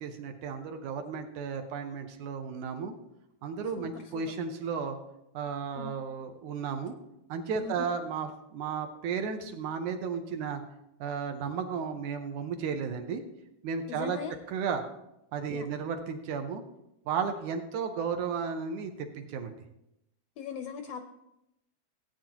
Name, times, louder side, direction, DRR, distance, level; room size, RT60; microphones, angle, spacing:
voice 1, 0.0-2.9 3.4-5.0 5.3-7.0 7.3-10.6 11.0-13.2 13.6-14.2 14.5-14.8 15.3-16.6 17.1-19.6, right 6 dB, 75° right, 6 dB, 2.1 m, -34 dB
voice 2, 3.7-4.2 5.8-5.9 7.6-7.7 13.9-14.4 15.5-15.7 20.4-21.0, left 7 dB, 80° left, 6 dB, 1.4 m, -40 dB
16.5 x 8.8 x 2.9 m, 0.84 s
omnidirectional pair, 3.7 m